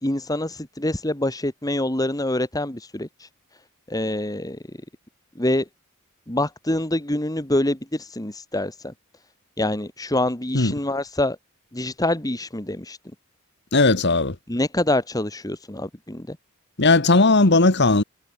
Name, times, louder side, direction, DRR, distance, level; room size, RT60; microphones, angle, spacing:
voice 1, 0.0-3.3 3.9-4.6 5.4-5.7 6.3-8.9 9.6-11.4 11.7-13.0 14.5-16.4, left 1 dB, 15° left, 2.0 m, -25 dB
voice 2, 13.7-14.4 16.8-18.0, left 3 dB, 50° left, 1.8 m, -17 dB
head